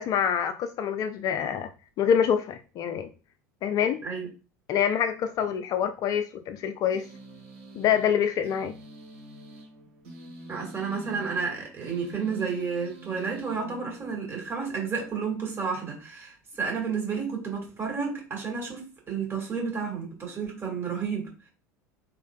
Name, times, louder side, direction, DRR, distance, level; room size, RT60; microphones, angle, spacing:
voice 1, 0.0-1.7 2.0-3.1 3.6-4.0 4.7-7.1 7.7-8.7, left 8 dB, 40° left, 0.4 m, -26 dB
sound 1, 6.9-14.3, right 2 dB, 60° right, 1.9 m, -45 dB
voice 2, 10.5-21.3, right 5 dB, 25° right, 1.7 m, -31 dB
3.6 x 3.2 x 2.3 m
figure-of-eight pair, 75°, 10 cm